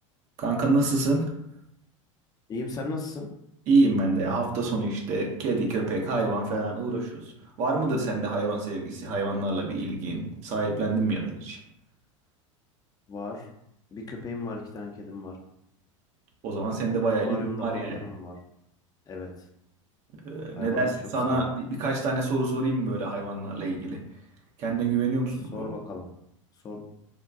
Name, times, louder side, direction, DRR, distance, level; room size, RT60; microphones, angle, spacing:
voice 1, 0.4-1.3 3.7-7.3 7.6-11.6 16.4-18.0 20.2-24.0 24.6-25.7, right 3 dB, 45° right, 0 dB, 0.7 m, -27 dB
voice 2, 2.5-3.3 13.1-13.5 13.9-15.3 17.2-18.4 19.1-19.5 20.5-20.9 21.3-21.4 25.5-26.1 26.6-26.8, left 3 dB, 20° left, 0 dB, 0.6 m, -36 dB
3.5 x 2.2 x 2.5 m, 0.77 s
hypercardioid pair, 85°, 17 cm